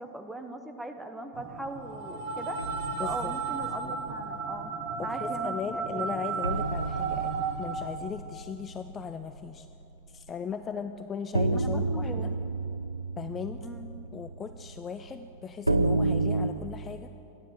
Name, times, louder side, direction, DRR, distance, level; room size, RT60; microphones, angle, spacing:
voice 1, 0.0-2.6 3.0-6.1 11.5-12.3 13.6-13.9, right 1 dB, 5° right, 6 dB, 0.9 m, -40 dB
sound 1, 1.3-7.8, right 5 dB, 45° right, 1.3 m, -34 dB
sound 2, 2.6-4.5 4.9-5.1 5.5-5.6 6.4-10.3 10.6-10.7 11.3-16.5, right 2 dB, 85° right, 0.3 m, -31 dB
voice 2, 3.0-3.3 5.0-9.7 10.1-12.3 13.2-13.6 14.1-17.1, left 6 dB, 25° left, 9 dB, 0.4 m, -37 dB
12.5 x 10.0 x 7.0 m, 2.9 s
figure-of-eight pair, 90°, 0 cm